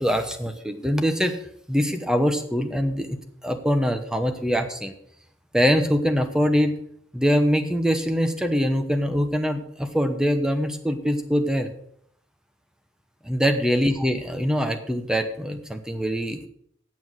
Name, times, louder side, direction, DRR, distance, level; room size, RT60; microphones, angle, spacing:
voice 1, 0.0-1.4 1.7-3.2 3.4-4.9 5.5-6.7 7.1-11.7 13.2-16.4, equal, 5° right, 7 dB, 0.9 m, -23 dB
8.6 x 7.4 x 6.3 m, 0.68 s
head